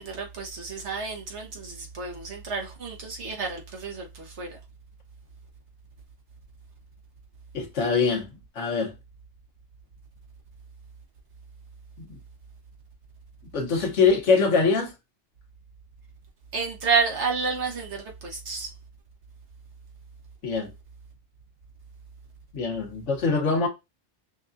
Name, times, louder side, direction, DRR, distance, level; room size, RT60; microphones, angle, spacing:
voice 1, 0.0-4.6 16.5-18.7, right 5 dB, 75° right, 1.3 m, -30 dB
voice 2, 7.5-8.3 8.6-8.9 12.0-12.1 13.5-14.9 20.4-20.7 22.5-23.7, left 4 dB, 80° left, 1.3 m, -23 dB
5.9 x 2.4 x 2.6 m
omnidirectional pair, 1.2 m